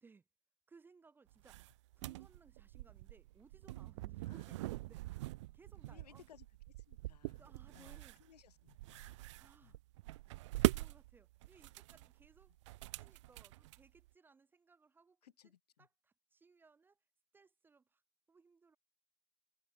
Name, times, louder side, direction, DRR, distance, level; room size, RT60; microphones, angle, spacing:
voice 1, 0.7-6.2 7.3-8.2 9.4-9.8 10.7-12.5 12.8-15.5 15.8-17.0 17.3-18.0 18.3-18.8, right 4 dB, 10° right, 1.6 m, -65 dB
sound 1, 1.3-14.1, right 18 dB, 45° right, 0.6 m, -42 dB
voice 2, 5.9-6.5 6.8-9.2 9.6-9.8 15.2-15.9, left 10 dB, 70° left, 4.7 m, -63 dB
open air
hypercardioid pair, 130°, 21 cm